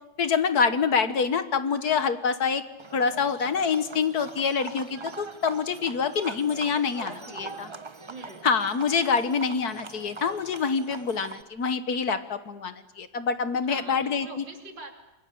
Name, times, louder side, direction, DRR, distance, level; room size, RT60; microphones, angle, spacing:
voice 1, 0.2-2.6 2.9-7.7 8.4-14.4, left 5 dB, 60° left, 11 dB, 1.7 m, -26 dB
Livestock farm animals working animals, 2.8-11.4, right 3 dB, 30° right, 0.5 m, -42 dB
voice 2, 6.6-7.7 8.1-8.4 13.6-14.9, right 3 dB, 75° right, 3 dB, 3.6 m, -44 dB
28.0 x 22.0 x 8.6 m, 1.1 s
omnidirectional pair, 2.0 m